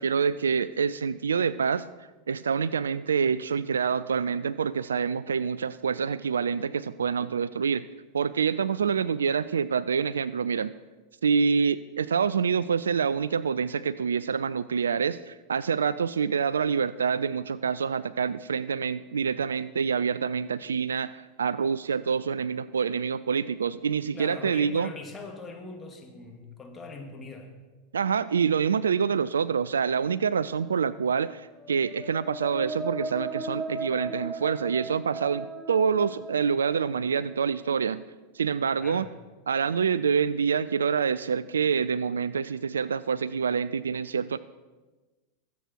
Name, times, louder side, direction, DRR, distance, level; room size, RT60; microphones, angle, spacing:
voice 1, 0.0-1.9 2.3-7.9 8.1-10.7 11.2-24.9 27.9-38.0 38.3-39.1 39.5-44.4, right 6 dB, 80° right, 18 dB, 0.3 m, -26 dB
voice 2, 24.1-27.5 38.7-39.1, left 3 dB, 20° left, 2 dB, 2.7 m, -41 dB
sound 1, 31.6-37.4, right 2 dB, 15° right, 1.6 m, -37 dB
22.0 x 8.3 x 4.6 m, 1.2 s
hypercardioid pair, 90°, 0 cm